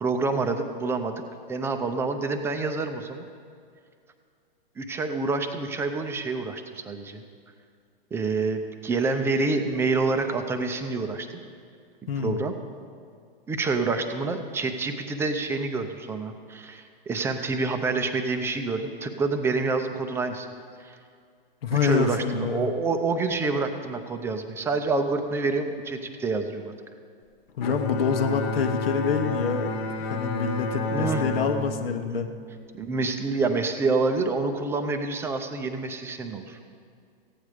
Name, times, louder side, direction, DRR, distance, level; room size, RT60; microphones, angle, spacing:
voice 1, 0.0-1.2 1.5-3.3 4.8-7.2 8.1-11.4 12.2-12.5 13.5-20.5 20.8-21.0 21.7-26.7 30.9-31.2 32.1-32.3 32.7-36.6, right 3 dB, 10° right, 6 dB, 0.5 m, -27 dB
voice 2, 12.1-12.4 21.6-22.8 27.6-32.3, left 6 dB, 75° left, 5 dB, 1.0 m, -27 dB
Bowed string instrument, 27.6-33.1, left 2 dB, 50° left, 1.3 m, -31 dB
15.0 x 9.1 x 4.9 m, 2.2 s
hypercardioid pair, 135°, 30 cm